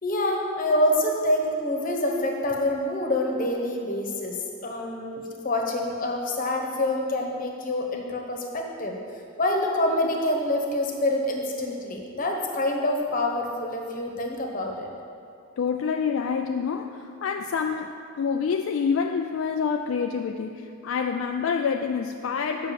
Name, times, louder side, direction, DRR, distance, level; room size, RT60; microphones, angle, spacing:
voice 1, 0.0-9.0 9.4-14.9, left 1 dB, 40° left, 1 dB, 1.1 m, -26 dB
voice 2, 15.6-22.7, left 6 dB, 65° left, 4 dB, 0.3 m, -27 dB
6.9 x 5.6 x 7.4 m, 2.4 s
head